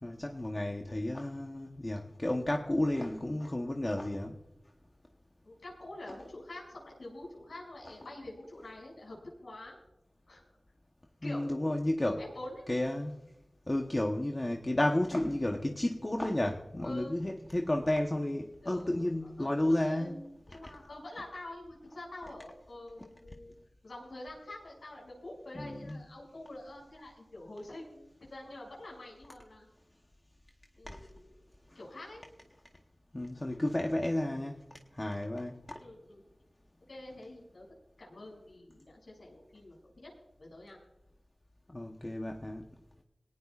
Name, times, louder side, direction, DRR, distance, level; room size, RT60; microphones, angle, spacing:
voice 1, 0.0-4.4 11.2-12.2 12.7-13.2 13.7-20.1 25.6-26.0 30.9-31.1 33.1-34.6 34.9-35.6 41.7-42.7, left 1 dB, 30° left, 2 dB, 1.0 m, -32 dB
voice 2, 5.4-9.2 9.4-9.8 10.3-10.4 11.2-12.7 16.8-17.2 18.6-23.5 23.8-29.7 30.8-31.3 31.7-32.2 35.8-36.2 36.9-37.7 38.0-40.1 40.4-40.8, left 1 dB, 85° left, -3 dB, 6.7 m, -47 dB
19.5 x 18.0 x 2.5 m, 0.88 s
wide cardioid pair, 70°, 0 cm